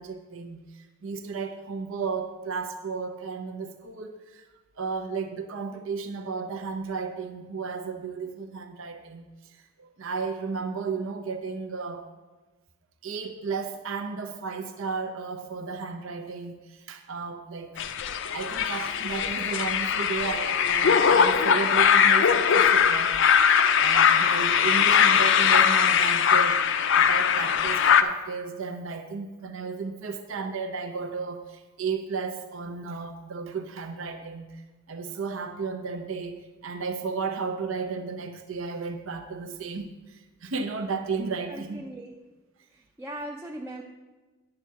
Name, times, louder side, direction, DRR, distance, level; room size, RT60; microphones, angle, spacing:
voice 1, 0.0-4.4 4.8-12.1 13.0-17.9 18.3-23.2 23.8-26.6 27.0-34.6 34.9-41.8, right 5 dB, 65° right, 5 dB, 0.6 m, -34 dB
sound 1, 17.8-28.0, left 7 dB, 60° left, 0.5 m, -21 dB
voice 2, 41.5-42.2 42.7-43.8, right 1 dB, 10° right, 1 dB, 0.4 m, -39 dB
9.8 x 7.2 x 4.6 m, 1.2 s
head